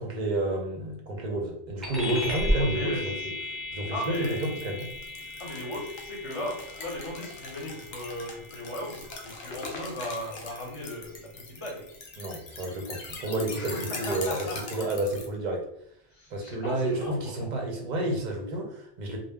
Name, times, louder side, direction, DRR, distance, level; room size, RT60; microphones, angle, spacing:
voice 1, 0.0-3.3 3.7-4.9 12.2-15.6 16.3-19.2, right 1 dB, 50° right, 1 dB, 0.6 m, -30 dB
sound 1, 1.8-11.7, left 1 dB, ahead, 0.5 m, -36 dB
voice 2, 2.5-3.0 3.9-4.5 5.4-11.9 13.6-14.9 16.1-17.5, left 1 dB, 30° left, -3 dB, 0.8 m, -37 dB
sound 2, 4.0-15.3, left 3 dB, 65° left, 0.8 m, -42 dB
2.1 x 2.1 x 3.4 m, 0.73 s
omnidirectional pair, 1.2 m